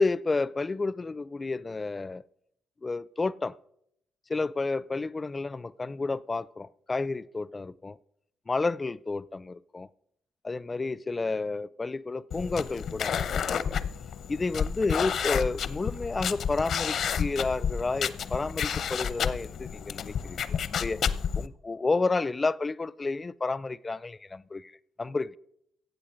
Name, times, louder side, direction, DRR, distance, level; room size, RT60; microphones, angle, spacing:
voice 1, 0.0-2.2 2.8-3.6 4.3-8.0 8.5-9.9 10.4-13.6 14.3-21.0 21.3-24.7 25.0-25.4, left 3 dB, 25° left, 0.4 m, -31 dB
sound 1, 12.3-21.5, left 7 dB, 65° left, 0.7 m, -31 dB
16.0 x 8.0 x 5.2 m
cardioid pair, 90°, 0 cm